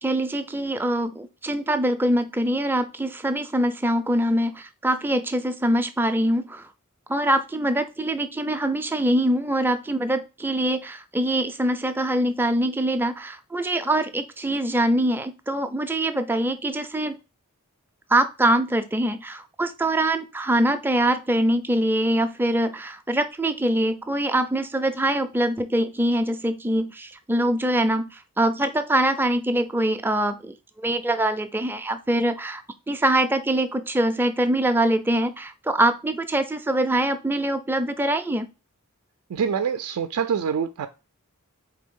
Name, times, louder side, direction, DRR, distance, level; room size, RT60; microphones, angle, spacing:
voice 1, 0.0-6.7 7.1-17.2 18.1-30.5 30.8-38.5, right 1 dB, 10° right, 0.4 m, -23 dB
voice 2, 39.3-40.9, right 7 dB, 75° right, 0.4 m, -25 dB
4.2 x 3.4 x 3.6 m
head